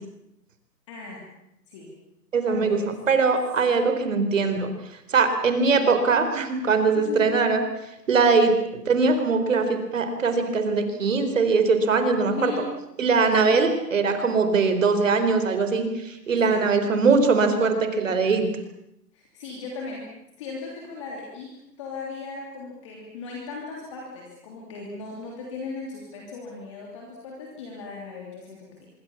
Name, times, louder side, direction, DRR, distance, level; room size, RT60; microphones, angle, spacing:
voice 1, 0.9-1.2 1.7-1.9 2.5-2.9 6.9-7.3 12.2-12.7 13.3-13.6 16.4-16.6 19.1-20.1 20.4-21.5 21.8-28.9, left 4 dB, 20° left, -1 dB, 3.1 m, -37 dB
voice 2, 2.3-4.7 5.1-7.6 8.1-12.5 13.0-18.5, right 4 dB, 50° right, 8 dB, 4.2 m, -21 dB
25.5 x 23.0 x 7.2 m, 0.83 s
hypercardioid pair, 180°, 49 cm